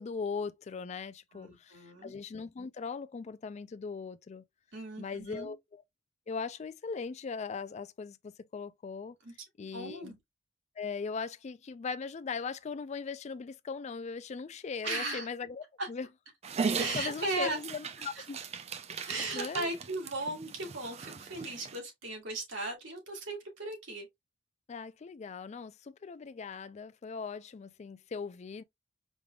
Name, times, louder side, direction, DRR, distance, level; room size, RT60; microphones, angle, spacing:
voice 1, 0.0-4.4 5.0-5.8 6.3-9.2 9.6-10.1 10.8-16.1 16.6-18.4 18.9-19.7 24.7-28.6, left 5 dB, 35° left, 0.3 m, -39 dB
voice 2, 1.3-2.1 4.7-5.5 9.2-9.3 9.7-10.2 14.8-15.3 15.8-15.9 16.8-17.6 18.2-18.3 19.1-24.1, right 2 dB, 65° right, 2.0 m, -37 dB
Dog, 16.4-21.8, right 5 dB, 35° right, 0.4 m, -38 dB
5.2 x 3.3 x 2.3 m
head